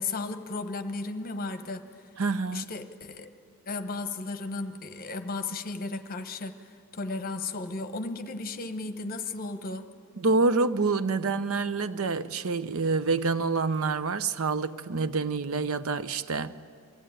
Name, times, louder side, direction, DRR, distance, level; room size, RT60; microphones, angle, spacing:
voice 1, 0.0-1.9 2.5-3.3 3.7-6.6 6.9-9.9, left 3 dB, 40° left, 1.0 m, -34 dB
voice 2, 2.2-2.7 10.2-16.5, right 4 dB, 70° right, 0.7 m, -27 dB
22.5 x 15.5 x 9.0 m
head